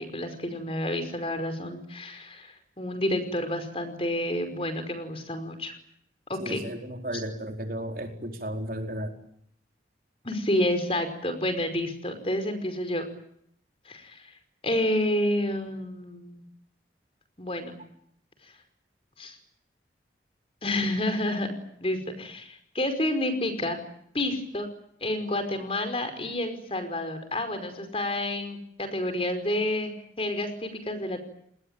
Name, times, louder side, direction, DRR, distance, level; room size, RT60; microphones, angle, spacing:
voice 1, 0.0-5.7 6.3-6.6 10.2-13.1 13.9-14.3 14.6-16.4 17.4-17.7 19.2-19.4 20.6-21.5 21.8-23.8 24.1-24.7 25.0-29.9 30.2-31.2, left 1 dB, 30° left, 8 dB, 5.2 m, -29 dB
voice 2, 6.4-9.2, right 1 dB, 50° right, 4 dB, 4.6 m, -34 dB
28.5 x 20.5 x 9.1 m, 0.70 s
head